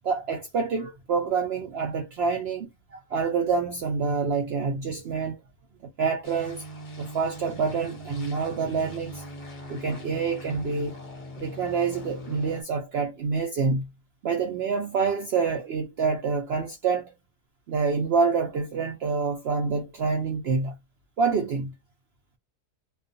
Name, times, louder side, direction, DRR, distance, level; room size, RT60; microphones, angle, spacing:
voice 1, 0.0-5.4 6.0-6.6 7.0-9.2 9.7-11.0 11.4-13.9 14.2-17.1 17.7-20.7 21.2-21.7, right 5 dB, 85° right, 0.5 m, -27 dB
sound 1, 6.2-12.6, equal, 40° left, 0.7 m, -41 dB
2.4 x 2.3 x 2.5 m
omnidirectional pair, 1.7 m